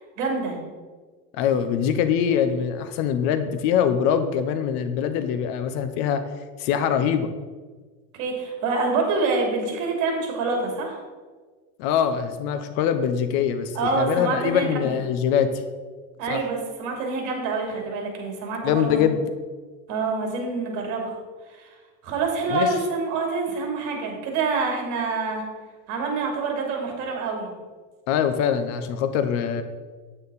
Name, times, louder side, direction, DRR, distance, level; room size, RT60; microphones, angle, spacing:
voice 1, 0.2-0.6 8.1-11.0 13.7-14.9 16.2-19.1 19.9-21.2 21.5-21.7 22.0-25.4 25.9-27.5, right 4 dB, 55° right, 1 dB, 3.2 m, -26 dB
voice 2, 1.3-6.2 6.6-7.3 11.8-15.5 16.3-16.4 18.6-19.2 22.5-22.7 28.1-29.6, left 8 dB, 65° left, 9 dB, 1.0 m, -23 dB
9.0 x 8.9 x 4.2 m, 1.4 s
supercardioid pair, 140°, 36 cm